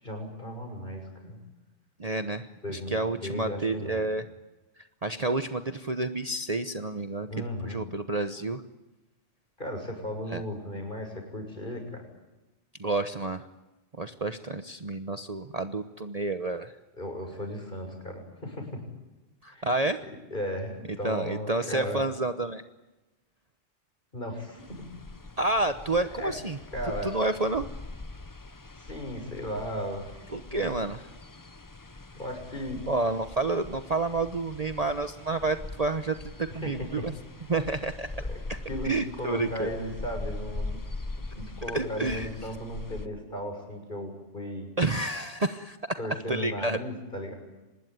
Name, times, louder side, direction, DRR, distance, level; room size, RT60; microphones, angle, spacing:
voice 1, 0.0-1.4 2.6-4.0 7.3-7.8 9.6-12.0 17.0-18.8 19.5-19.7 20.0-22.0 24.1-24.9 26.1-26.3 26.7-27.2 28.7-30.7 32.1-32.8 36.5-37.1 37.6-37.7 38.3-38.4 38.7-40.8 41.3-44.7 46.0-47.3, equal, 40° left, 4 dB, 6.9 m, -36 dB
voice 2, 2.0-4.2 5.0-8.6 10.3-10.4 12.8-13.5 14.0-16.7 19.4-20.0 21.0-22.6 25.4-26.6 27.0-27.7 30.3-31.0 32.9-37.1 37.5-38.2 38.5-38.6 38.8-39.7 41.7-42.3 44.8-45.8 46.3-46.8, right 2 dB, 35° right, 9 dB, 1.0 m, -29 dB
sound 1, 24.6-43.1, left 2 dB, 20° left, 0.7 m, -42 dB
25.5 x 20.5 x 9.4 m, 1.0 s
omnidirectional pair, 1.3 m